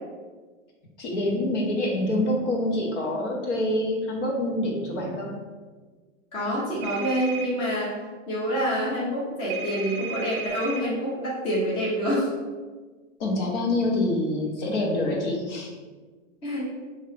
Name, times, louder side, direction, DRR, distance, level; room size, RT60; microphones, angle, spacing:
voice 1, 1.0-5.3 13.2-15.7, left 1 dB, 65° left, -1 dB, 1.2 m, -26 dB
voice 2, 6.3-8.0 8.3-12.3 16.4-16.7, equal, 15° left, -6 dB, 0.6 m, -27 dB
sound 1, 6.8-7.5 9.5-10.8, right 6 dB, 45° right, 0.5 m, -35 dB
5.0 x 2.7 x 3.4 m, 1.4 s
supercardioid pair, 165°, 37 cm